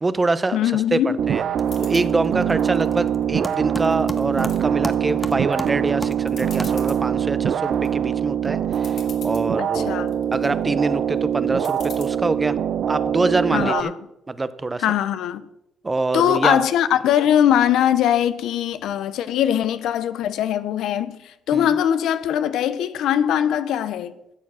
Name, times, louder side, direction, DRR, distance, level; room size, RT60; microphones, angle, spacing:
voice 1, 0.0-0.6 0.9-1.0 1.3-1.4 1.8-10.0 10.3-12.6 12.9-13.9 14.3-14.8 15.8-16.6 21.5-21.7, right 3 dB, 25° right, 0.7 m, -25 dB
voice 2, 0.5-1.2 9.6-10.2 13.5-14.0 14.8-15.5 16.1-24.2, left 10 dB, 80° left, 0.6 m, -21 dB
sound 1, 0.7-1.1 1.3-7.2, equal, 5° left, 1.0 m, -36 dB
sound 2, 1.2-13.8, right 9 dB, 65° right, 0.5 m, -23 dB
sound 3, 1.6-2.1 2.6-3.4 3.8-4.6 5.1-5.5 5.9-6.0 6.3-7.0 7.5-7.9 8.5-8.6 8.7-9.5 10.0-10.5 11.6-12.1, left 6 dB, 65° left, 2.0 m, -42 dB
12.5 x 7.2 x 6.1 m
cardioid pair, 90°, 0 cm